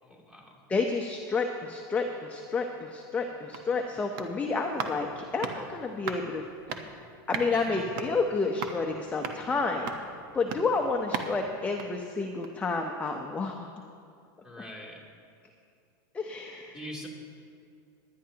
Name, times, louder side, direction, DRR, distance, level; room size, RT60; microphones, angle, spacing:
voice 1, 0.0-0.6 7.5-7.9 14.4-15.0 16.7-17.1, equal, 5° right, -4 dB, 2.7 m, -43 dB
voice 2, 0.7-7.0 7.3-9.9 10.3-13.7 16.1-16.7, left 4 dB, 10° left, 2 dB, 0.7 m, -30 dB
sound 1, 3.3-12.7 13.0-13.1, right 5 dB, 60° right, 1.1 m, -40 dB
20.5 x 10.5 x 2.9 m, 2.4 s
supercardioid pair, 130°, 11 cm